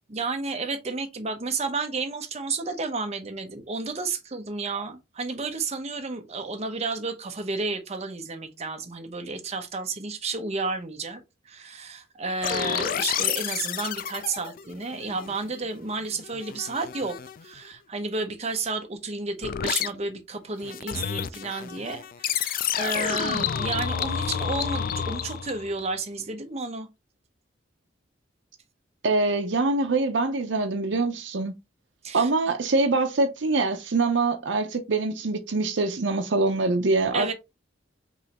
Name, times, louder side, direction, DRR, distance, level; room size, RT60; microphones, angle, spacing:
voice 1, 0.1-11.2 11.5-17.2 17.4-26.9 32.0-32.3 37.1-37.3, right 3 dB, 35° right, 0.8 m, -32 dB
sound 1, 12.4-15.7 16.0-17.5 19.4-19.9 20.6-25.8, left 8 dB, 50° left, 0.4 m, -30 dB
voice 2, 29.0-31.5 32.1-37.3, right 3 dB, 65° right, 0.7 m, -24 dB
5.4 x 3.1 x 2.9 m
head